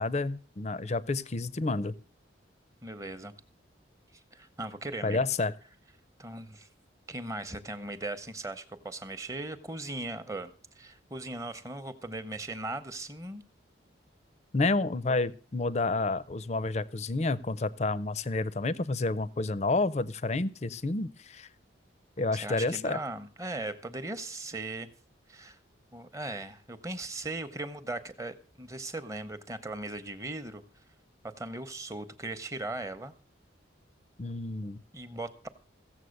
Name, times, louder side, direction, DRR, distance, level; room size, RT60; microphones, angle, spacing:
voice 1, 0.0-1.9 5.0-5.5 14.5-21.5 22.2-23.0 34.2-34.8, left 3 dB, 35° left, 18 dB, 0.5 m, -29 dB
voice 2, 2.8-3.3 4.3-5.2 6.2-6.7 7.1-13.4 22.3-24.9 25.3-25.6 25.9-30.6 31.2-33.1 34.9-35.5, right 2 dB, 15° right, 10 dB, 0.8 m, -38 dB
16.0 x 7.4 x 6.5 m, 0.42 s
head